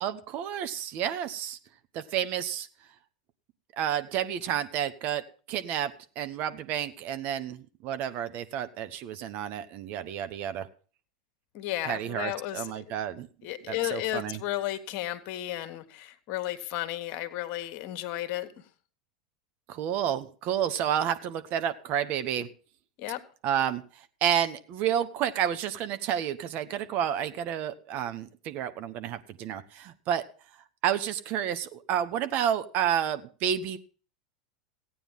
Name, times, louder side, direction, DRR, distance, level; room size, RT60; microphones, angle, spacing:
voice 1, 0.0-1.6 1.9-2.7 3.8-5.2 5.5-10.7 11.8-13.3 13.7-14.4 19.7-22.5 23.4-23.8 24.2-30.3 30.8-33.8, right 9 dB, 50° right, 1.1 m, -30 dB
voice 2, 11.5-12.8 13.4-18.5 23.0-23.2, left 14 dB, 50° left, 1.4 m, -33 dB
15.0 x 9.1 x 5.4 m
hypercardioid pair, 90°, 4 cm